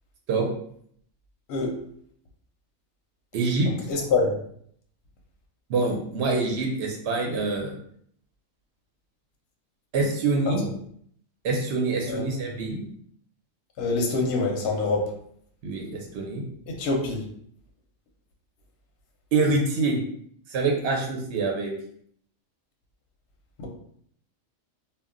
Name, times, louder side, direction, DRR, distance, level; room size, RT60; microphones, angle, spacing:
voice 1, 3.3-3.7 5.7-7.7 9.9-10.6 11.4-12.8 15.6-16.4 19.3-20.0 20.5-21.7, right 3 dB, 60° right, 0 dB, 0.8 m, -25 dB
voice 2, 3.9-4.4 10.5-10.6 12.1-12.3 12.6-12.7 13.8-15.1 16.7-17.3 23.6-23.7, left 3 dB, 60° left, 1 dB, 0.7 m, -25 dB
2.2 x 2.1 x 3.6 m, 0.64 s
omnidirectional pair, 1.4 m